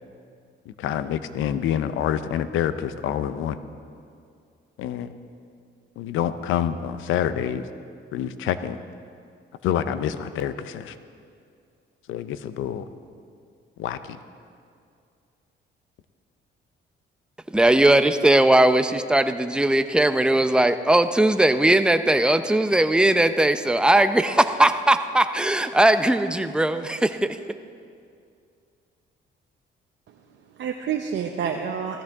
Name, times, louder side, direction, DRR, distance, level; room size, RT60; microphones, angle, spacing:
voice 1, 0.7-3.6 4.8-5.1 6.0-7.6 8.1-8.8 9.6-11.0 12.1-12.8 13.8-14.2, left 9 dB, 85° left, 12 dB, 0.6 m, -27 dB
voice 2, 17.5-27.3, right 1 dB, 5° right, 9 dB, 0.6 m, -19 dB
voice 3, 30.1-32.0, right 7 dB, 65° right, 3 dB, 0.8 m, -29 dB
16.0 x 14.5 x 3.6 m, 2.3 s
cardioid pair, 90°, 20 cm